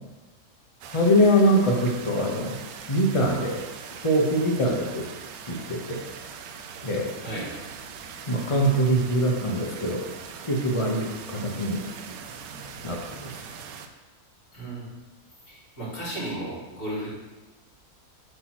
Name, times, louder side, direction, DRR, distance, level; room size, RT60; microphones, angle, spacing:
sound 1, 0.8-13.9, right 6 dB, 75° right, 1.0 m, -41 dB
voice 1, 0.9-2.6 2.9-3.6 3.9-5.1 5.5-6.0 6.8-7.1 8.3-10.0 10.4-11.8 12.8-13.3, equal, 30° left, -1 dB, 0.7 m, -23 dB
voice 2, 14.5-14.9 15.5-17.1, right 1 dB, 60° left, -7 dB, 3.0 m, -34 dB
8.0 x 3.0 x 6.1 m, 1.1 s
omnidirectional pair, 1.6 m